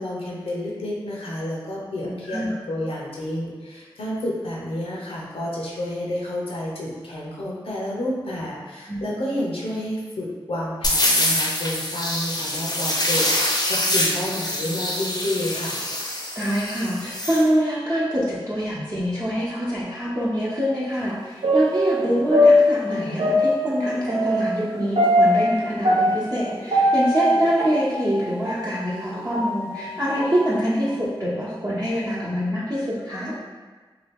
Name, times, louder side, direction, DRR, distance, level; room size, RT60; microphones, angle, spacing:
voice 1, 0.0-2.4 2.7-15.8, left 1 dB, 85° left, -5 dB, 0.7 m, -30 dB
voice 2, 2.0-2.5 8.9-9.1 16.3-33.3, equal, 40° right, -10 dB, 0.9 m, -25 dB
Alien's tail, 10.8-17.4, left 1 dB, 45° left, 0.6 m, -25 dB
sound 1, 21.4-28.7 29.1-30.5 30.9-31.0, left 1 dB, 80° right, 0.7 m, -21 dB
2.7 x 2.3 x 3.5 m, 1.4 s
cardioid pair, 40°, 10 cm